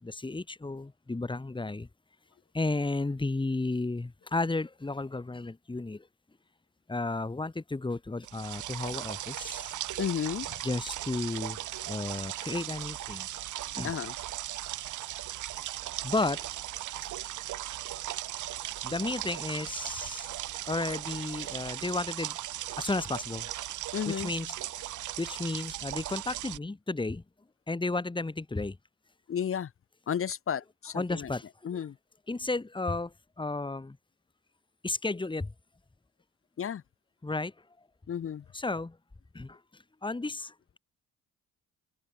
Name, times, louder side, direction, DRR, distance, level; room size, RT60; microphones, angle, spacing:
voice 1, 0.0-1.9 2.5-6.1 6.9-9.7 10.6-13.3 13.7-13.9 16.0-16.6 18.8-20.3 20.6-22.4 22.8-23.5 24.0-24.5 25.2-27.2 27.7-28.8 30.9-31.9 32.3-34.0 34.8-35.5 37.2-37.5 38.5-39.0 39.3-40.8, left 3 dB, 15° left, 3.2 m, -33 dB
sound 1, 8.2-26.6, right 13 dB, 80° right, 2.6 m, -38 dB
voice 2, 10.0-10.5 13.8-14.1 23.9-24.3 29.3-29.7 30.1-31.3 31.6-31.9 36.6-36.8 38.1-38.4, left 8 dB, 45° left, 1.3 m, -32 dB
open air
cardioid pair, 90°, 30 cm